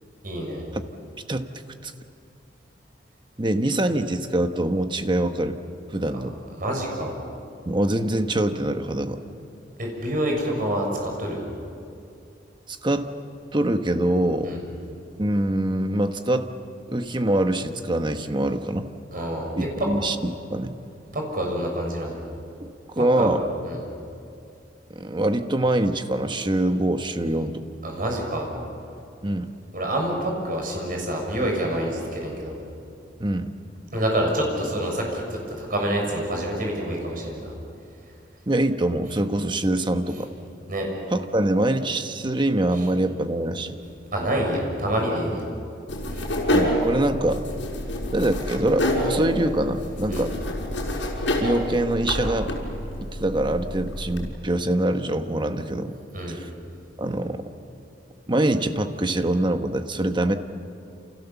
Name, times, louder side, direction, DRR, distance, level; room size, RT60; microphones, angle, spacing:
voice 1, 0.2-0.6 6.1-6.2 6.6-7.1 9.8-11.5 14.4-14.6 19.1-19.5 19.8-19.9 21.1-22.1 23.0-23.3 23.6-23.8 27.8-28.5 29.7-32.5 33.9-37.5 40.7-40.9 42.7-42.8 44.1-45.4 46.1-46.3 50.1-50.3 56.1-56.4, right 1 dB, 50° right, 0 dB, 6.5 m, -27 dB
voice 2, 3.4-5.6 5.9-6.4 7.7-9.2 12.7-13.1 13.5-14.6 15.2-16.5 16.9-18.9 19.5-20.7 22.6-23.5 24.9-27.6 29.2-29.5 33.2-33.5 38.5-40.3 41.1-43.8 46.5-47.4 48.1-50.3 51.4-52.5 53.0-55.9 56.3-56.5 57.0-57.4 58.3-60.3, right 1 dB, 25° right, 7 dB, 1.2 m, -24 dB
sound 1, 45.9-54.3, left 1 dB, 90° left, 5.9 m, -27 dB
29.0 x 28.5 x 7.2 m, 2.5 s
head